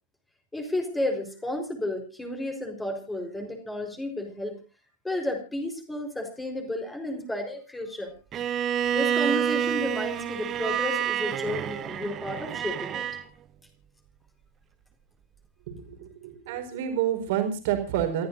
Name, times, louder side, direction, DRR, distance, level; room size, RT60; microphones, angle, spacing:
voice 1, 0.5-4.6 5.0-8.1 8.9-13.1, left 1 dB, 10° left, 4 dB, 4.2 m, -32 dB
Bowed string instrument, 8.3-13.2, right 9 dB, 30° right, 1.4 m, -28 dB
voice 2, 15.7-18.3, right 10 dB, 50° right, 5 dB, 4.3 m, -29 dB
28.5 x 14.0 x 2.6 m, 0.31 s
figure-of-eight pair, 90°, 0 cm